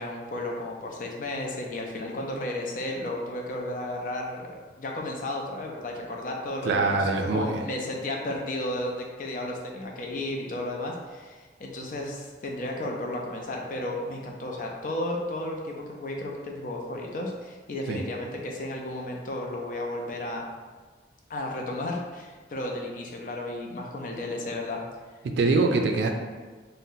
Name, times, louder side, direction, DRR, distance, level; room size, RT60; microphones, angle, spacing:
voice 1, 0.0-20.5 21.3-24.8, left 1 dB, 45° left, 0 dB, 0.4 m, -33 dB
voice 2, 6.6-7.6 17.9-18.0 25.2-26.1, right 3 dB, 75° right, 3 dB, 0.3 m, -24 dB
2.6 x 2.1 x 3.8 m, 1.4 s
head